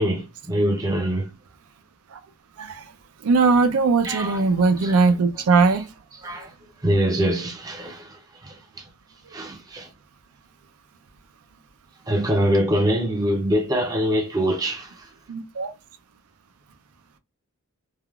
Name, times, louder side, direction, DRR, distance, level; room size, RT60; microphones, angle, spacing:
voice 1, 0.0-1.3 4.0-4.4 4.8-5.1 5.3-5.8 6.2-6.5 6.8-8.6 9.3-9.9 12.1-15.1, equal, 15° right, 0.5 m, -24 dB
voice 2, 3.2-5.9 15.3-15.7, right 4 dB, 75° right, 0.4 m, -19 dB
3.4 x 2.3 x 2.2 m
head